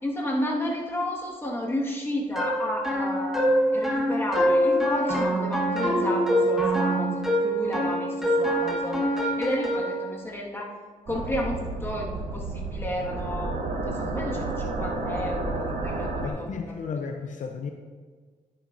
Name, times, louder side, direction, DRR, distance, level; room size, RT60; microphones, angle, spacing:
voice 1, 0.0-10.7 11.1-17.0, left 1 dB, 15° left, -3 dB, 1.8 m, -32 dB
sound 1, 2.4-10.0, equal, 5° right, 1.5 m, -25 dB
sound 2, 11.1-16.3, right 2 dB, 80° right, 1.3 m, -31 dB
voice 2, 16.2-17.7, left 5 dB, 60° left, 4 dB, 0.7 m, -33 dB
11.0 x 9.9 x 2.7 m, 1.5 s
cardioid pair, 110°, 14 cm